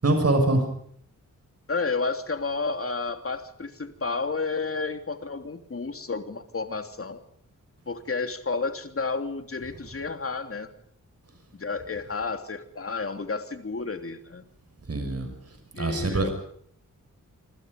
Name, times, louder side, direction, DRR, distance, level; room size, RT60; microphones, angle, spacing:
voice 1, 0.0-0.6 14.9-15.3 15.7-16.3, right 2 dB, 50° right, 5 dB, 6.4 m, -23 dB
voice 2, 1.7-7.2 7.9-10.7 11.5-14.4 15.7-16.3, left 4 dB, 45° left, 7 dB, 3.0 m, -31 dB
27.5 x 26.0 x 5.3 m, 0.65 s
wide cardioid pair, 135°, 32 cm